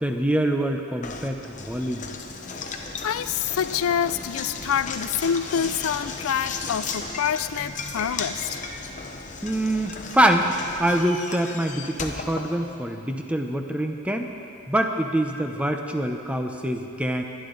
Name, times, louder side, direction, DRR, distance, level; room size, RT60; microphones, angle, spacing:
voice 1, 0.0-2.1 9.4-10.5 10.8-14.3 14.7-17.2, right 1 dB, 5° right, 4 dB, 0.8 m, -25 dB
Knock, 1.0-13.2, left 4 dB, 35° left, 0.9 m, -35 dB
voice 2, 3.0-8.6, left 8 dB, 90° left, 14 dB, 0.4 m, -26 dB
23.0 x 10.5 x 4.0 m, 2.8 s
head